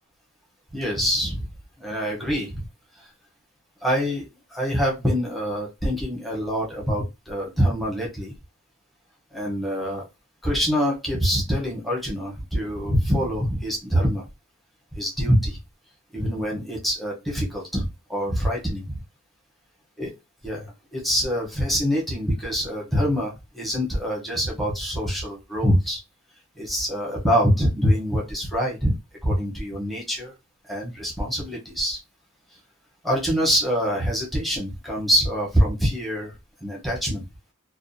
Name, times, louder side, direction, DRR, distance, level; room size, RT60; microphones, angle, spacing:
voice 1, 0.7-1.5 1.8-2.7 3.8-4.2 4.5-8.3 9.3-10.0 10.4-14.2 14.9-15.6 16.1-19.0 20.0-20.1 20.4-26.0 26.6-29.0 29.2-30.3 30.7-32.0 33.0-36.3 36.6-37.2, equal, ahead, -3 dB, 0.8 m, -25 dB
2.4 x 2.2 x 2.6 m, 0.24 s
head